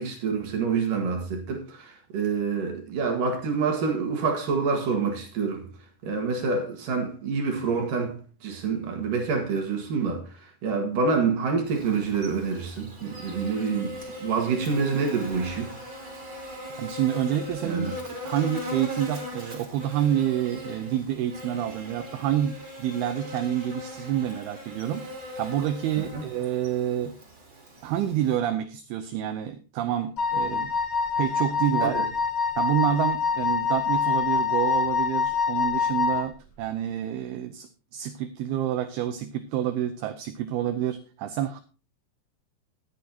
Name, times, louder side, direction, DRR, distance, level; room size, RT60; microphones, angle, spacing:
voice 1, 0.0-5.7 6.0-15.7 17.6-18.0 26.0-26.2 31.8-32.1, right 5 dB, 60° right, 3.2 m, -27 dB
Buzz, 11.6-28.4, left 1 dB, 30° right, 3.8 m, -40 dB
voice 2, 16.8-17.9 18.2-25.0 25.4-27.2 27.8-30.7 31.2-32.0 32.6-41.6, right 11 dB, 75° right, 2.5 m, -28 dB
Wind instrument woodwind instrument, 30.2-36.3, left 6 dB, 70° left, 0.6 m, -25 dB
19.0 x 8.6 x 2.9 m
omnidirectional pair, 4.9 m